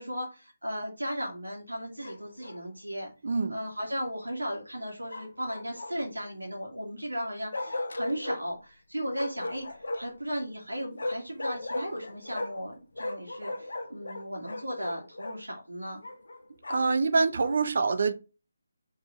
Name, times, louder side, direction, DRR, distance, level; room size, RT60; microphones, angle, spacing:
voice 1, 0.0-3.1 3.5-16.0, equal, 80° right, 2.2 m, -36 dB
Bark, 2.0-2.6 5.1-6.2 7.5-8.4 9.1-10.2 11.0-12.7 12.9-15.4 16.0-17.0, left 2 dB, 60° left, 0.9 m, -37 dB
voice 2, 3.2-3.6 16.7-18.1, right 4 dB, 50° right, 0.8 m, -25 dB
4.9 x 4.2 x 5.0 m
figure-of-eight pair, 150°, 0 cm